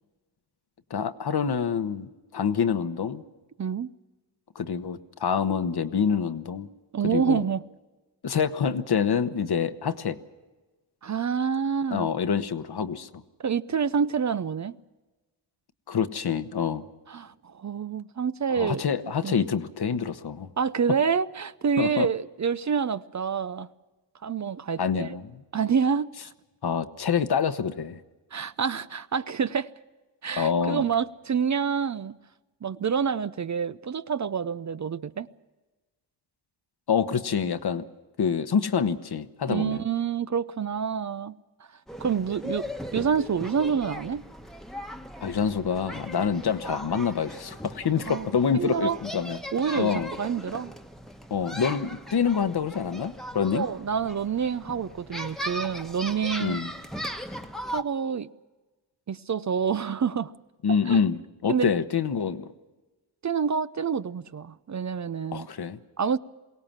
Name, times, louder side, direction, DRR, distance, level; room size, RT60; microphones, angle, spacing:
voice 1, 0.9-3.2 4.5-6.7 7.0-7.4 8.2-10.2 11.9-13.2 15.9-16.8 18.6-20.5 21.8-22.1 24.8-25.4 26.6-28.0 30.4-30.8 36.9-37.8 38.2-39.8 45.2-49.4 49.8-50.1 51.3-53.7 56.4-56.7 60.6-62.5 65.3-65.8, left 6 dB, 55° left, 1.1 m, -26 dB
voice 2, 3.6-3.9 6.9-7.6 11.0-12.1 13.4-14.8 17.1-18.8 19.2-19.4 20.6-23.7 24.2-25.2 25.5-26.3 28.3-29.7 30.2-32.1 32.6-35.3 39.5-41.4 42.0-44.2 48.1-48.3 48.5-49.0 49.5-49.9 50.2-50.7 53.5-56.6 57.7-58.3 59.1-60.3 60.9-61.0 61.5-61.7 63.2-65.5 66.0-66.2, right 6 dB, 40° right, 0.6 m, -27 dB
sound 1, 41.9-57.8, equal, ahead, 1.2 m, -38 dB
22.5 x 17.5 x 7.4 m
cardioid pair, 60°, 45 cm